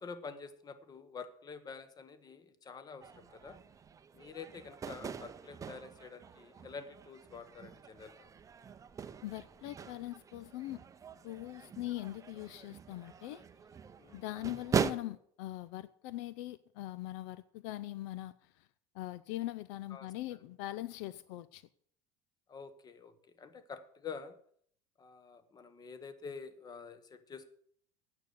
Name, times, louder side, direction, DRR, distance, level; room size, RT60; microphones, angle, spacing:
voice 1, 0.0-3.6 4.1-8.3 14.0-14.2 19.9-20.1 22.5-24.4 25.0-27.5, left 5 dB, 25° left, 1.2 m, -48 dB
sound 1, 3.0-14.9, right 7 dB, 20° right, 0.6 m, -41 dB
voice 2, 9.2-10.8 11.2-13.4 14.1-18.3 18.9-21.7, left 15 dB, 75° left, 0.5 m, -41 dB
9.1 x 6.8 x 8.1 m
supercardioid pair, 120°, 15 cm